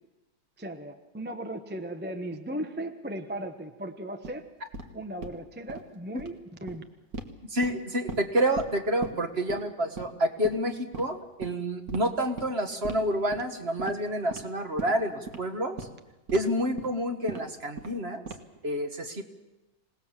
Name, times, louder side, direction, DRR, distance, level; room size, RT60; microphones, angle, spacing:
voice 1, 0.6-4.5 4.9-6.8, right 1 dB, 10° right, 6 dB, 0.8 m, -37 dB
sound 1, 4.2-4.3 4.7-4.9 5.2-5.4 5.7-5.8 6.1-6.3 6.7-6.8 7.1-7.3 7.6-8.2 8.6-8.7 9.0-9.1 9.5-9.6 10.0-10.1 10.4-10.6 10.9-11.0 11.4-11.5 11.9-12.0 12.4-12.5 12.8-13.0 13.3-13.5 13.8-14.0 14.3-14.4 14.8-14.9 15.3-15.4 15.8-15.9 16.3-16.4 16.8-16.9 17.3-17.4 17.8-18.0 18.3-18.6, right 4 dB, 55° right, 2.0 m, -37 dB
voice 2, 7.5-15.8 16.3-18.2 18.6-19.2, equal, 35° right, 6 dB, 1.8 m, -28 dB
26.5 x 18.5 x 7.4 m, 1.1 s
omnidirectional pair, 2.0 m